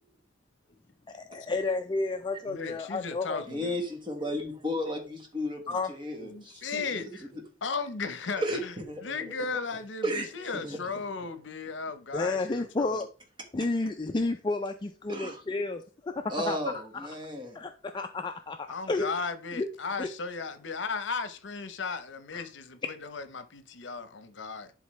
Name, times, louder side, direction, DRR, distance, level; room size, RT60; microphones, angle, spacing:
voice 1, 1.1-3.4 5.7-5.9 12.1-13.1 13.5-16.6 17.0-17.1 17.5-19.1 19.6-19.7 20.0-20.1 22.3-22.4, left 3 dB, 25° left, 0.4 m, -31 dB
voice 2, 2.5-3.7 6.2-7.3 7.6-8.7 9.0-13.1 18.7-24.7, left 4 dB, 75° left, 0.8 m, -36 dB
voice 3, 3.5-7.4 8.4-9.2 10.0-10.3 10.6-10.8 15.1-15.4 16.3-17.6, equal, 25° right, 1.4 m, -34 dB
11.0 x 3.7 x 3.1 m
head